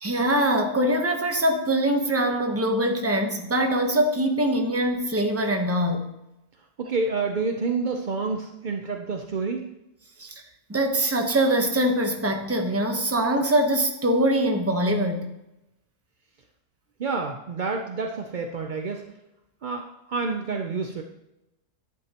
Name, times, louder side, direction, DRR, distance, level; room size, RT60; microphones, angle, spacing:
voice 1, 0.0-6.1 10.2-10.4 10.7-15.3, right 1 dB, 15° right, 3 dB, 0.7 m, -23 dB
voice 2, 6.8-9.7 17.0-19.0 19.6-21.0, right 4 dB, 60° right, 2 dB, 0.5 m, -28 dB
11.0 x 8.8 x 2.9 m, 0.91 s
omnidirectional pair, 1.6 m